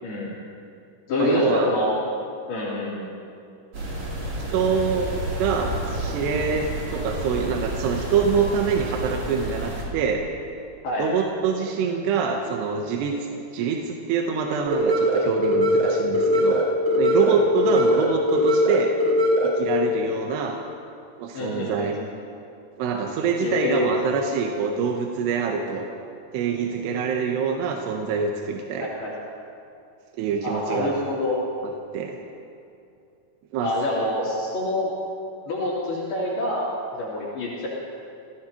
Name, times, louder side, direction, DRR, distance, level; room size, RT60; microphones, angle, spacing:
voice 1, 0.0-0.3 1.1-1.9 2.5-3.1 10.8-11.1 13.2-13.3 21.3-22.1 23.4-23.9 28.8-29.1 30.4-31.4 33.6-34.9 35.5-36.7 37.0-37.7, left 1 dB, 70° left, -7 dB, 4.8 m, -26 dB
voice 2, 1.2-1.7 4.5-10.2 11.0-13.1 13.5-16.7 17.0-18.9 19.4-20.6 21.2-22.0 22.8-25.9 26.3-28.9 30.2-30.9 31.6-32.2 33.5-33.7, right 6 dB, 85° right, 1 dB, 3.1 m, -25 dB
sound 1, 3.7-9.8, right 1 dB, 45° right, 4.1 m, -30 dB
sound 2, 14.7-19.7, left 1 dB, 15° right, 3.7 m, -21 dB
28.5 x 17.0 x 3.0 m, 2.6 s
omnidirectional pair, 4.7 m